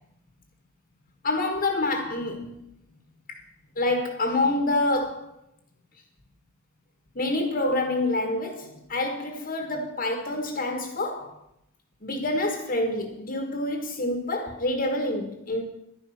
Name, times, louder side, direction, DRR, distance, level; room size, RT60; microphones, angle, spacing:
voice 1, 1.2-2.6 3.3-3.4 3.8-5.3 7.1-11.4 12.0-15.6, left 2 dB, 45° left, 1.5 m, -27 dB
11.5 x 10.5 x 5.8 m
head